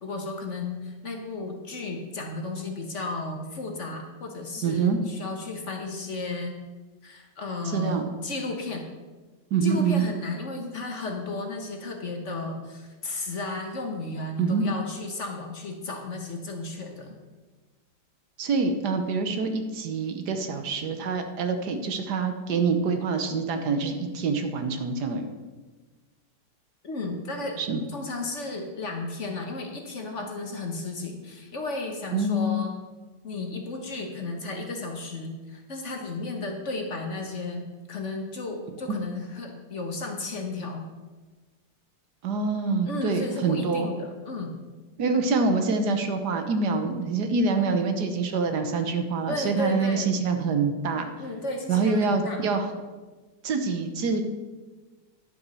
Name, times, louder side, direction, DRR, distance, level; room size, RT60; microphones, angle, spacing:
voice 1, 0.0-6.5 7.0-8.9 9.6-17.2 26.8-27.6 27.9-32.7 33.2-40.9 42.9-44.5 49.3-50.2 51.2-52.4, left 2 dB, 45° left, 3 dB, 1.3 m, -34 dB
voice 2, 4.6-5.0 7.7-8.1 9.5-10.0 14.4-14.6 18.4-25.3 27.6-27.8 32.1-32.6 38.9-39.0 42.2-43.9 45.0-51.1 51.7-52.7 53.4-54.2, right 4 dB, 70° right, 7 dB, 1.5 m, -26 dB
10.5 x 5.9 x 6.2 m, 1.3 s
omnidirectional pair, 1.9 m